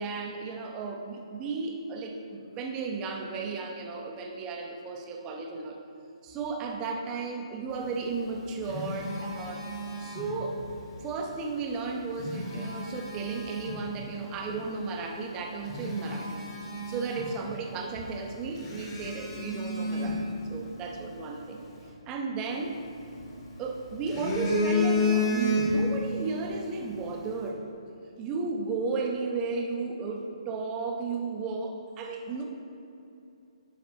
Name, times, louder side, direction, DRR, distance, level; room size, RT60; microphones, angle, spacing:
voice 1, 0.0-5.8 6.2-9.7 10.0-10.6 11.0-16.4 16.9-21.6 22.1-22.7 23.6-27.7 28.2-32.4, right 4 dB, 20° right, 1 dB, 0.6 m, -34 dB
Telephone, 8.1-10.7 12.0-13.9 14.5-14.7 15.2-15.3 15.6-17.7 18.0-18.1 18.6-21.0 22.5-23.5 23.9-26.0 26.3-26.5, left 2 dB, 30° left, 1.3 m, -31 dB
11.0 x 4.1 x 2.9 m, 2.7 s
figure-of-eight pair, 135°, 3 cm